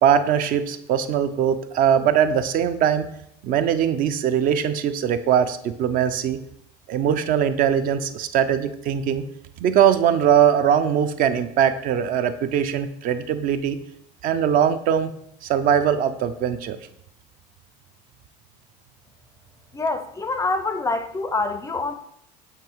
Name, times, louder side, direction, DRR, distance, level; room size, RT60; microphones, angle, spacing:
voice 1, 0.0-3.1 3.4-6.4 6.9-9.2 9.6-13.8 14.2-15.1 15.4-16.8, right 9 dB, 50° right, 10 dB, 0.5 m, -21 dB
voice 2, 19.7-21.9, left 3 dB, 15° left, 9 dB, 0.4 m, -26 dB
7.4 x 2.9 x 4.5 m, 0.74 s
supercardioid pair, 120°, 19 cm